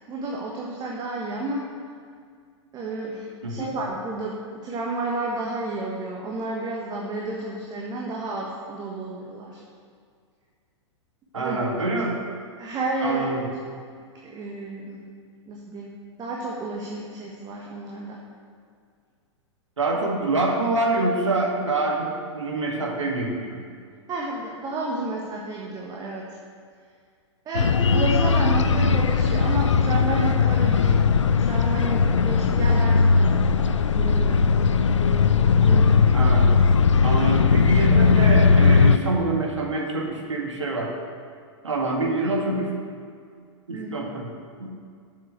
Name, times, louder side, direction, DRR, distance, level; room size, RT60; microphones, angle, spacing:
voice 1, 0.1-1.7 2.7-9.6 11.3-11.6 12.6-13.2 14.2-15.0 15.5-15.9 16.2-18.2 24.1-26.4 27.4-31.1 31.4-34.5 35.6-36.1 43.7-44.1, right 2 dB, 25° right, -2 dB, 1.4 m, -31 dB
voice 2, 11.3-12.2 13.0-13.4 19.8-23.6 36.1-36.7 37.0-40.9 41.6-42.7 43.7-44.3 44.6-44.7, right 2 dB, 80° right, 0 dB, 2.0 m, -25 dB
sound 1, 27.5-39.0, left 5 dB, 80° left, 0.5 m, -18 dB
7.7 x 7.3 x 8.0 m, 2.1 s
figure-of-eight pair, 105°, 15 cm